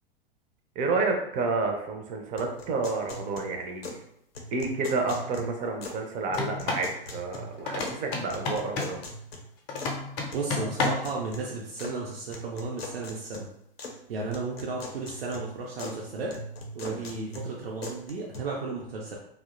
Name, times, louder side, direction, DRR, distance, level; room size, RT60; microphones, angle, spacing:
voice 1, 0.8-4.0 4.5-9.0 16.9-17.0, right 3 dB, 25° right, 3 dB, 0.4 m, -30 dB
sound 1, 2.4-4.1 4.3-6.1 6.3-8.0 8.3-9.9 10.3-12.0 12.3-14.0 14.3-16.0 16.3-18.4, left 1 dB, 85° left, 0.5 m, -41 dB
sound 2, 6.3-6.9 7.7-9.0 9.7-11.1, left 3 dB, 35° left, 0.5 m, -31 dB
voice 2, 10.3-13.5 14.1-16.3 16.7-19.2, right 3 dB, 75° right, -2 dB, 0.5 m, -34 dB
2.6 x 2.1 x 2.4 m, 0.74 s
figure-of-eight pair, 95°, 30 cm